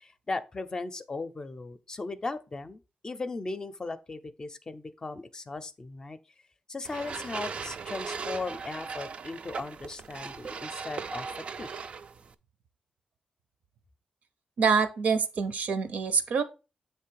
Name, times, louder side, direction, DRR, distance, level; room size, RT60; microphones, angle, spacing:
voice 1, 0.0-6.2 6.7-11.3 11.6-11.7, left 3 dB, 30° left, 0.5 m, -37 dB
sound 1, 6.8-12.3, right 5 dB, 50° right, 0.4 m, -38 dB
voice 2, 14.6-16.4, right 5 dB, 80° right, 0.7 m, -26 dB
7.6 x 3.2 x 4.6 m
wide cardioid pair, 140°, 3 cm